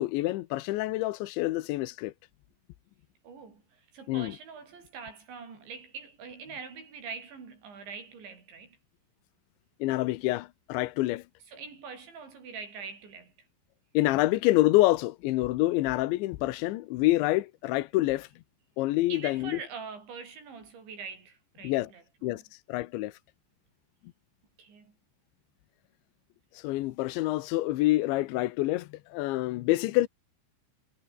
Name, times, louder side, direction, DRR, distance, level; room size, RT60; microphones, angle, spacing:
voice 1, 0.0-2.1 4.1-4.4 9.8-11.2 13.9-18.3 18.8-19.6 21.6-21.9 22.2-22.4 22.7-23.1 26.5-30.1, left 18 dB, 85° left, 3.3 m, -27 dB
voice 2, 3.2-8.8 11.5-13.3 19.1-22.4 24.6-24.9, right 5 dB, 80° right, 8.6 m, -44 dB
omnidirectional pair, 5.1 m